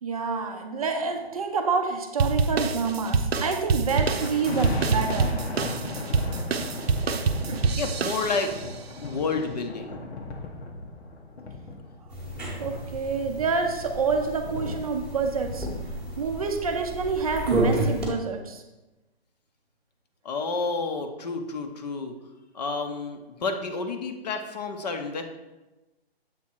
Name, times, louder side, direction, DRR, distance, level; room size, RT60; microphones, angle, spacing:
voice 1, 0.0-5.4 7.5-7.8 12.6-15.7 16.2-18.6, right 5 dB, 35° right, 4 dB, 0.5 m, -28 dB
sound 1, 2.2-8.7, right 4 dB, 75° right, 0.7 m, -26 dB
sound 2, 3.8-14.8, left 2 dB, 90° left, 1.1 m, -37 dB
voice 2, 7.7-8.5 9.0-10.0 20.2-22.1 22.5-25.2, left 4 dB, 40° left, 6 dB, 0.6 m, -30 dB
sound 3, 12.1-18.1, right 1 dB, 5° right, 0.9 m, -31 dB
7.3 x 3.6 x 4.4 m, 1.1 s
hypercardioid pair, 155°, 32 cm